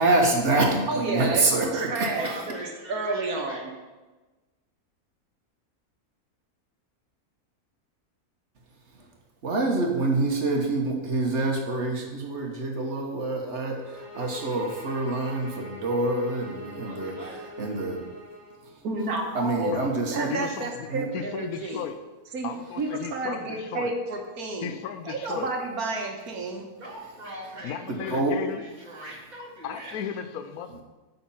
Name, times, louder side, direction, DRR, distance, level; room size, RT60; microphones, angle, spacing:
voice 1, 0.0-2.3 9.4-18.0 19.3-20.3 20.9-21.0 28.1-28.3, right 2 dB, 50° right, 1 dB, 1.3 m, -26 dB
voice 2, 0.9-3.7 18.8-19.8 20.1-21.9 22.3-24.7 25.1-26.7, right 3 dB, 85° right, 2 dB, 1.6 m, -31 dB
voice 3, 1.9-3.6 16.8-17.4 26.8-27.7 28.0-28.1 28.6-30.0, right 1 dB, 30° right, -3 dB, 1.9 m, -42 dB
sound 1, 13.7-18.6, equal, 65° left, 2.0 m, -43 dB
voice 4, 20.3-22.0 22.4-23.9 24.6-25.5 27.6-28.6 29.6-30.8, left 8 dB, 85° left, 9 dB, 1.1 m, -35 dB
8.6 x 4.2 x 5.5 m, 1.2 s
omnidirectional pair, 1.5 m